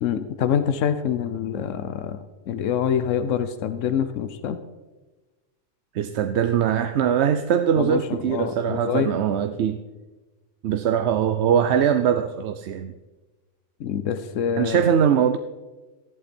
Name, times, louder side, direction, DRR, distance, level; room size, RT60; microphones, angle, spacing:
voice 1, 0.0-2.2 2.5-4.6 7.8-9.1 13.8-14.8, left 8 dB, 85° left, 11 dB, 1.1 m, -25 dB
voice 2, 5.9-9.8 10.6-12.9 14.6-15.4, right 8 dB, 65° right, 9 dB, 0.9 m, -21 dB
14.0 x 11.5 x 4.3 m, 1.2 s
omnidirectional pair, 1.3 m